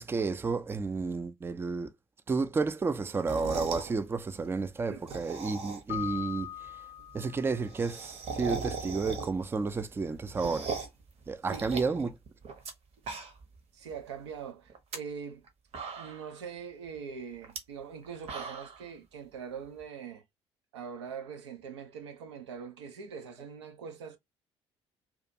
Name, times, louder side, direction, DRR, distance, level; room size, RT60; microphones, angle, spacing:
voice 1, 0.0-1.9 2.3-6.5 7.1-10.7 11.3-12.1, right 4 dB, 15° right, 0.4 m, -31 dB
sound 1, 3.1-3.9 4.9-6.0 6.4-6.5 6.7-6.8 7.0-7.1 7.3-9.5 9.9-11.0 11.5-12.7 13.0-13.6 13.9-14.0 14.7-15.0 15.4-15.5 15.7-16.4 17.4-17.6 18.0-18.8, right 5 dB, 45° right, 0.8 m, -38 dB
Keyboard (musical), 5.9-7.7, left 11 dB, 60° left, 0.4 m, -40 dB
voice 2, 11.5-12.0 13.7-15.5 16.0-20.2 20.7-24.2, right 6 dB, 80° right, 0.5 m, -42 dB
2.4 x 2.3 x 2.6 m
figure-of-eight pair, 50°, 14 cm